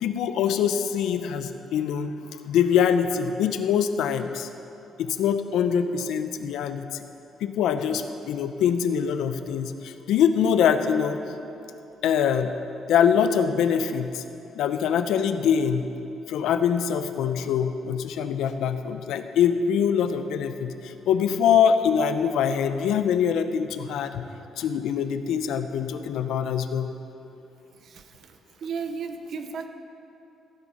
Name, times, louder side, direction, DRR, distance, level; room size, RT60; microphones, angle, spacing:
voice 1, 0.0-4.5 5.0-7.0 7.4-11.2 12.0-12.5 12.9-14.2 14.5-15.9 16.3-24.3 24.6-26.9, left 8 dB, 85° left, 9 dB, 0.7 m, -24 dB
voice 2, 27.8-29.7, right 5 dB, 50° right, 7 dB, 0.9 m, -35 dB
15.5 x 9.1 x 5.5 m, 2.9 s
cardioid pair, 155°, 0 cm